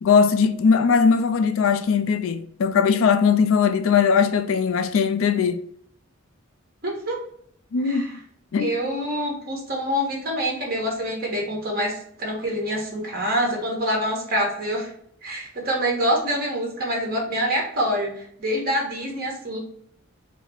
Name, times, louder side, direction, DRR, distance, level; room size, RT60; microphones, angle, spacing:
voice 1, 0.0-5.7 7.7-8.2 8.5-8.7, left 6 dB, 75° left, 0.4 m, -20 dB
voice 2, 6.8-7.2 7.8-8.1 8.5-14.9 15.2-19.6, equal, 50° right, 1.4 m, -26 dB
4.7 x 2.0 x 3.4 m
head